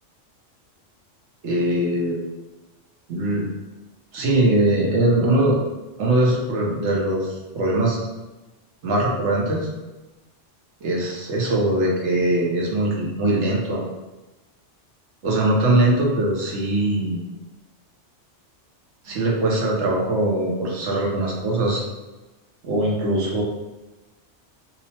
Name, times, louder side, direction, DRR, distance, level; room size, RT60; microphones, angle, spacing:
voice 1, 1.4-2.2 3.1-3.5 4.1-5.6 6.0-8.0 8.8-9.7 10.8-13.8 15.2-17.2 19.0-21.8 22.6-23.4, right 1 dB, 70° right, -2 dB, 0.9 m, -21 dB
2.8 x 2.0 x 2.8 m, 1.1 s
omnidirectional pair, 1.3 m